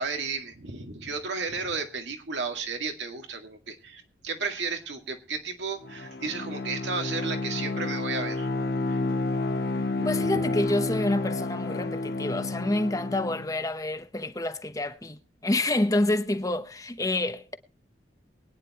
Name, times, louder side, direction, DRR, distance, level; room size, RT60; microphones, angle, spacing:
voice 1, 0.0-8.5 8.9-9.0 10.0-10.4, right 4 dB, 75° right, 2.1 m, -33 dB
Bowed string instrument, 5.8-13.5, left 2 dB, 60° left, 1.1 m, -30 dB
voice 2, 10.0-17.5, left 2 dB, 20° left, 0.9 m, -28 dB
23.0 x 9.8 x 2.9 m
head